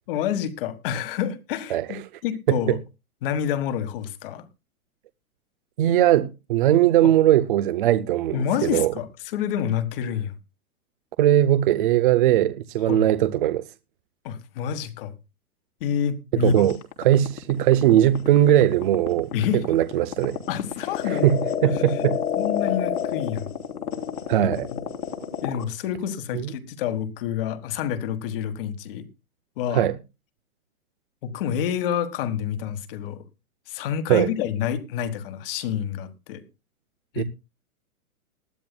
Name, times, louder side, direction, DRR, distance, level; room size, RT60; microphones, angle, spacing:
voice 1, 0.1-2.8 3.2-4.5 7.0-7.1 8.3-9.1 9.3-10.3 12.9-13.0 14.2-15.1 15.8-16.7 19.3-19.6 20.5-21.3 21.7-22.1 22.4-23.5 24.7-24.8 25.4-29.1 29.6-29.9 31.2-33.2 33.7-36.4 37.1-37.2, left 8 dB, 40° left, 1.5 m, -28 dB
voice 2, 1.7-2.0 2.5-2.8 5.8-8.9 11.2-13.6 16.3-20.4 21.1-22.2 24.3-24.7 26.3-26.5 29.7-30.0 34.1-34.3 37.2-37.3, right 12 dB, 40° right, 0.5 m, -20 dB
sound 1, 16.7-25.6, left 8 dB, 85° left, 3.6 m, -28 dB
19.5 x 12.0 x 2.2 m
hypercardioid pair, 155°, 43 cm